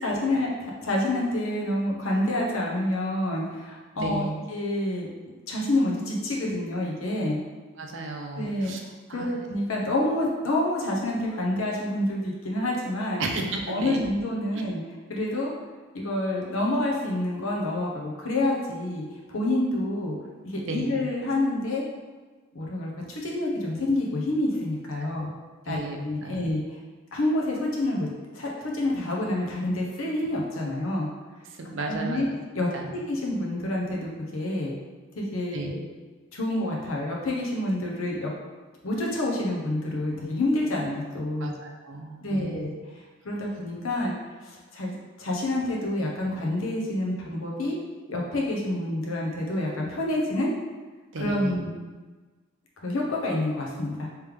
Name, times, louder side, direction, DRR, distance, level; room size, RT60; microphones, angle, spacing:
voice 1, 0.0-5.1 5.5-7.4 8.3-8.7 9.1-13.2 13.7-14.8 15.1-15.5 15.9-20.2 20.4-21.8 22.5-25.3 25.7-25.8 26.0-26.8 27.1-28.1 28.3-31.1 31.8-32.3 32.5-34.7 35.2-35.8 36.3-38.3 38.8-41.5 42.2-42.7 43.2-44.1 44.4-47.8 48.1-50.5 51.2-51.7 52.8-54.1, left 1 dB, 90° left, -2 dB, 0.8 m, -28 dB
voice 2, 4.0-4.3 7.8-8.8 9.1-9.4 13.2-14.1 20.7-21.0 25.0-25.3 25.7-26.4 31.5-32.3 32.7-32.9 35.5-35.7 41.4-42.6 51.1-51.6, right 2 dB, 70° right, 2 dB, 0.5 m, -34 dB
3.2 x 3.2 x 3.5 m, 1.3 s
head